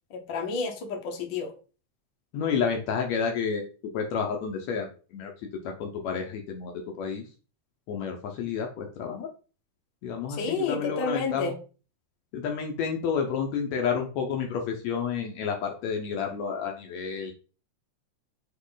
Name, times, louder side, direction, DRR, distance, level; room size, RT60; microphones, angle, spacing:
voice 1, 0.1-1.5 10.3-11.5, left 4 dB, 50° left, 2 dB, 1.6 m, -30 dB
voice 2, 2.3-3.6 3.9-5.3 5.6-7.2 7.9-9.3 10.0-11.5 12.3-17.3, left 6 dB, 70° left, 2 dB, 2.0 m, -30 dB
8.3 x 3.1 x 3.9 m, 0.36 s
omnidirectional pair, 3.4 m